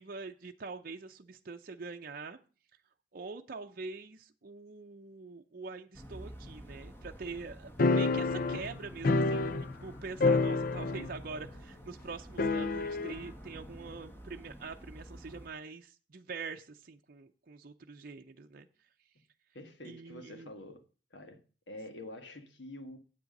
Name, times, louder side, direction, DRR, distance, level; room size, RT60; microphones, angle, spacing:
voice 1, 0.0-2.4 3.1-18.7 19.8-20.5, right 4 dB, 55° right, 0.6 m, -44 dB
sound 1, 5.9-15.5, equal, 15° left, 1.7 m, -50 dB
sound 2, 7.8-9.9 10.2-11.2 11.5-11.6 12.4-13.2, left 3 dB, 50° left, 0.5 m, -28 dB
voice 2, 19.5-20.8 21.1-23.0, left 1 dB, 90° left, 1.5 m, -47 dB
8.5 x 7.5 x 5.3 m
head